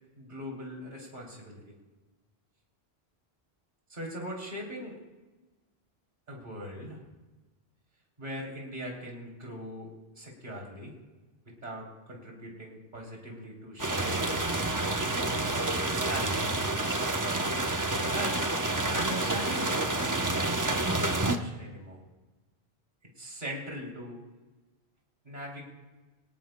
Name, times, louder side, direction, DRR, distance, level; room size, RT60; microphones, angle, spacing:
voice 1, 0.2-1.7 3.9-5.0 6.3-7.0 8.2-9.9 10.1-10.9 11.6-14.3 16.0-16.7 17.2-18.4 18.9-22.0 23.2-24.2 25.2-25.7, equal, 45° right, -2 dB, 3.3 m, -40 dB
sound 1, 13.8-21.4, right 2 dB, 20° right, 0.7 m, -29 dB
24.5 x 18.0 x 2.2 m, 1.2 s
omnidirectional pair, 1.1 m